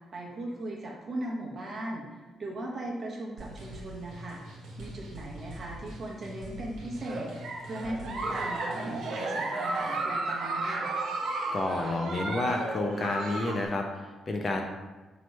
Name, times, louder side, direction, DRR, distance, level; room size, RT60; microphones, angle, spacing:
voice 1, 0.1-4.4 4.8-7.3 7.6-10.9, right 1 dB, 35° right, -2 dB, 0.9 m, -38 dB
sound 1, 3.4-9.2, equal, 85° right, 1.0 m, -44 dB
Giggle, 7.0-13.7, right 2 dB, 65° right, 0.7 m, -33 dB
voice 2, 11.5-14.6, left 2 dB, 35° left, 3 dB, 0.4 m, -30 dB
4.6 x 3.0 x 3.1 m, 1.2 s
cardioid pair, 135°, 0 cm